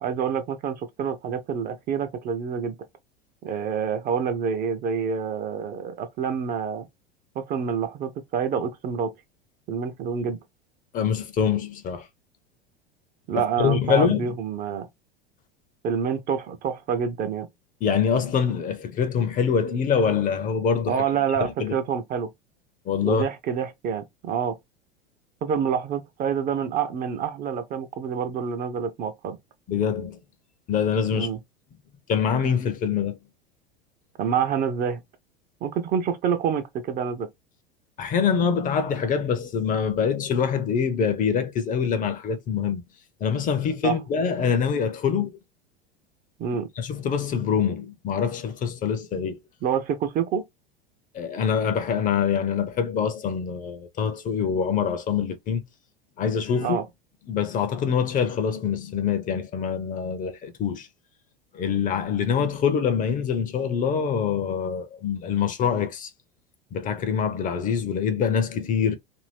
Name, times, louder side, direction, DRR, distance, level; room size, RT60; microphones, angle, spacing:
voice 1, 0.0-2.8 3.4-6.9 7.4-9.1 9.7-10.4 13.3-14.9 15.8-17.5 20.9-22.3 23.0-24.6 25.4-29.4 31.1-31.4 34.2-35.0 35.6-37.3 43.8-44.0 46.4-46.7 49.6-50.4 56.6-56.8, right 7 dB, 30° right, 0.6 m, -27 dB
voice 2, 10.9-12.1 13.3-14.4 17.8-21.0 21.4-21.7 22.9-23.3 29.7-30.2 30.7-31.3 32.1-33.2 38.0-42.8 43.2-45.4 46.8-49.4 51.1-55.6 56.2-56.8 57.3-60.9 61.5-66.1 66.7-69.0, left 7 dB, 30° left, 0.6 m, -25 dB
2.7 x 2.6 x 3.2 m
figure-of-eight pair, 85°, 29 cm